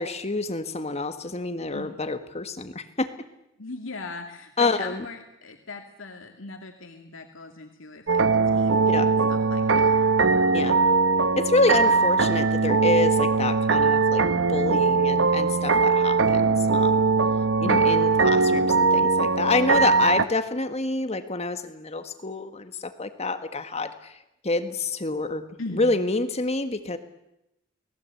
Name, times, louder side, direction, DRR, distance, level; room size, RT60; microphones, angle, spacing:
voice 1, 0.0-3.1 4.6-5.0 8.9-9.1 10.5-10.8 11.4-17.0 17.6-24.2 24.4-25.4 25.7-27.0, left 3 dB, 30° left, 9 dB, 1.6 m, -27 dB
voice 2, 3.6-10.0 17.6-18.0 25.6-25.9, left 3 dB, 75° left, 3 dB, 2.5 m, -39 dB
sound 1, 8.1-20.2, right 4 dB, 65° right, 1.0 m, -21 dB
28.5 x 19.5 x 8.5 m, 0.86 s
head